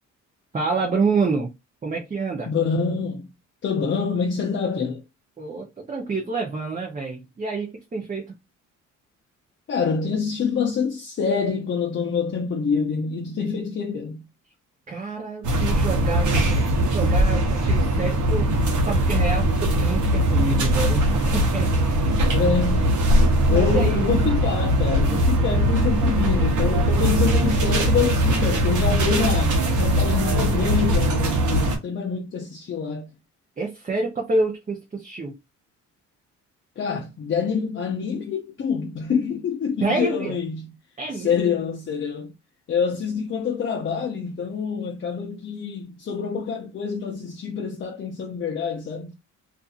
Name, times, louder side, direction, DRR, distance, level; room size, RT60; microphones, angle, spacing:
voice 1, 0.5-1.5 1.8-2.5 5.4-8.3 14.9-18.5 18.8-22.1 23.1-24.1 33.6-35.4 39.8-40.4 41.0-41.4, right 4 dB, 25° right, 0.7 m, -28 dB
voice 2, 2.5-3.3 3.6-5.0 9.7-14.2 22.3-23.0 23.5-33.1 36.8-40.7 41.1-42.3 42.7-49.1, left 6 dB, 40° left, 0.6 m, -26 dB
sound 1, 15.4-31.8, right 1 dB, 75° right, 0.9 m, -20 dB
2.6 x 2.5 x 2.4 m
cardioid pair, 90°, 30 cm